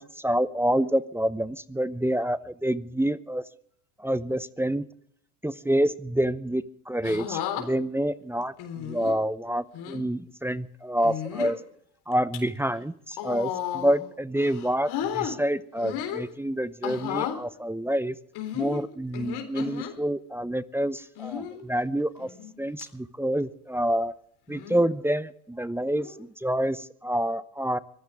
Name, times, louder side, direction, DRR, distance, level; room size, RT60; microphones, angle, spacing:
voice 1, 0.0-3.4 4.0-4.9 5.4-11.6 12.1-18.2 18.5-22.3 22.6-24.1 24.5-27.8, right 1 dB, 5° right, 16 dB, 0.7 m, -27 dB
sound 1, 7.0-7.6 8.6-9.2 9.7-10.0 11.0-11.6 12.1-12.4 13.1-14.0 14.4-15.3 15.8-16.3 16.8-17.4 18.4-19.9 21.2-21.6 22.2-22.5 22.8-22.9 24.5-24.9 25.9-26.2, left 10 dB, 60° left, 4.0 m, -33 dB
24.5 x 14.5 x 3.6 m, 0.66 s
hypercardioid pair, 85°, 44 cm